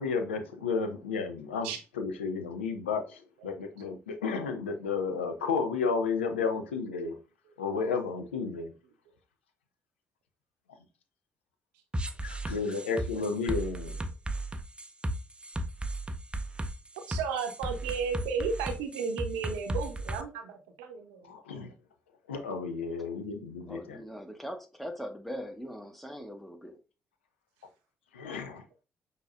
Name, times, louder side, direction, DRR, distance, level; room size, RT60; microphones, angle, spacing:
voice 1, 0.0-1.7 1.9-7.2 7.6-8.7 12.2-14.0 21.2-21.7 22.3-24.0 28.1-28.6, left 5 dB, 85° left, 0.5 m, -32 dB
sound 1, 11.9-20.2, right 1 dB, 15° right, 0.5 m, -35 dB
voice 2, 17.1-21.3, right 5 dB, 75° right, 0.7 m, -33 dB
voice 3, 23.7-26.8, equal, ahead, 1.0 m, -41 dB
6.0 x 2.8 x 2.4 m
hypercardioid pair, 45°, 6 cm